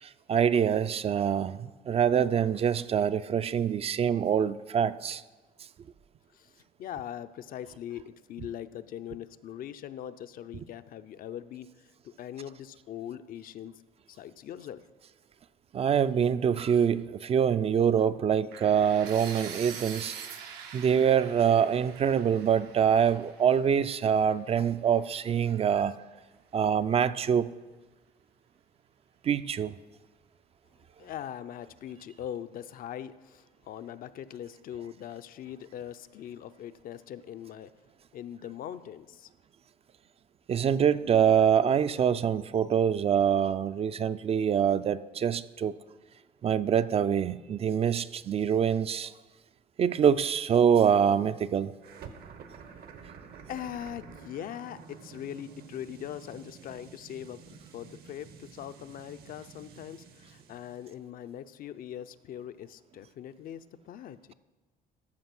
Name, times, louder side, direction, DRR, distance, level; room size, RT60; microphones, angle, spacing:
voice 1, 0.0-5.2 15.7-20.2 20.7-25.9 26.5-27.5 29.2-29.8 40.5-45.7 46.4-49.1 49.8-51.7, right 8 dB, 35° right, 14 dB, 0.3 m, -25 dB
voice 2, 6.3-13.8 14.2-14.8 31.0-37.7 38.1-39.3 52.6-52.7 53.5-64.3, left 10 dB, 55° left, 12 dB, 0.5 m, -41 dB
sound 1, 18.5-24.4, right 7 dB, 90° right, 1.0 m, -44 dB
sound 2, 51.8-60.9, right 6 dB, 65° right, 1.0 m, -50 dB
13.5 x 4.7 x 6.0 m, 1.2 s
cardioid pair, 110°, 17 cm